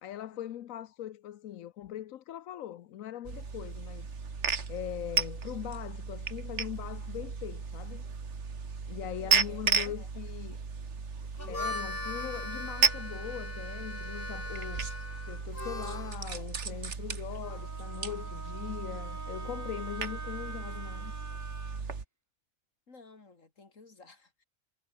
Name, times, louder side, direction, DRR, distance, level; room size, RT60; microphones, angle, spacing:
voice 1, 0.0-4.1 4.7-8.0 8.9-10.6 11.4-14.8 15.3-21.3, left 12 dB, 90° left, 1.1 m, -41 dB
sound 1, 3.2-22.0, right 5 dB, 60° right, 2.1 m, -35 dB
voice 2, 9.2-10.0 15.9-16.0 22.9-24.5, left 3 dB, 70° left, 3.5 m, -54 dB
Harmonica, 11.2-16.2, left 2 dB, 45° left, 3.5 m, -40 dB
Wind instrument woodwind instrument, 17.4-21.8, right 3 dB, 20° right, 0.6 m, -45 dB
omnidirectional pair, 1.4 m